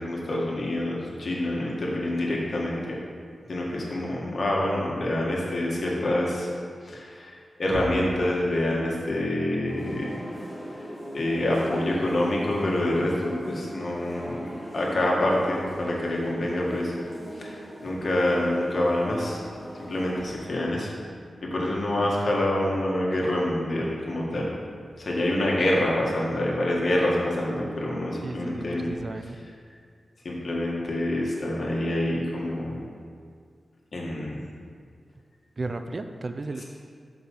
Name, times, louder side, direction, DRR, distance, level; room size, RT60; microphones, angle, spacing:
voice 1, 0.0-3.0 3.5-6.5 6.8-10.2 11.1-16.9 17.4-19.4 19.9-20.9 21.4-24.5 25.0-28.9 30.2-32.8 33.9-34.4 36.6-36.7, left 1 dB, 55° left, -3 dB, 1.7 m, -26 dB
sound 1, 9.7-20.3, equal, ahead, 2.0 m, -40 dB
voice 2, 28.2-29.4 35.6-36.6, right 2 dB, 40° right, 7 dB, 0.4 m, -34 dB
5.8 x 5.3 x 6.6 m, 2.1 s
wide cardioid pair, 90°, 0 cm